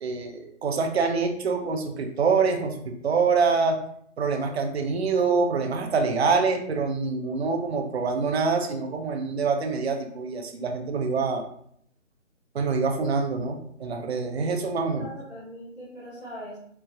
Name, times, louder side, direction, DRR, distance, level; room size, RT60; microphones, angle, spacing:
voice 1, 0.0-3.8 4.2-11.4 12.5-15.1, right 4 dB, 55° right, 4 dB, 0.5 m, -25 dB
voice 2, 14.9-16.6, equal, 15° left, -14 dB, 0.7 m, -41 dB
3.2 x 2.0 x 2.3 m, 0.66 s
figure-of-eight pair, 145°, 39 cm